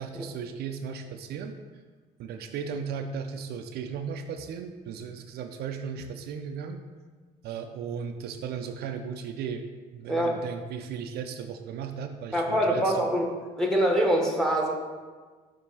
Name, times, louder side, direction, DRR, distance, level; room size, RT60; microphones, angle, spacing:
voice 1, 0.0-1.6 2.2-6.8 7.4-9.6 9.9-12.9, right 6 dB, 70° right, 6 dB, 0.5 m, -36 dB
voice 2, 12.3-13.3 13.6-14.7, equal, 5° left, 0 dB, 1.2 m, -24 dB
7.1 x 2.8 x 5.5 m, 1.4 s
cardioid pair, 110°, 17 cm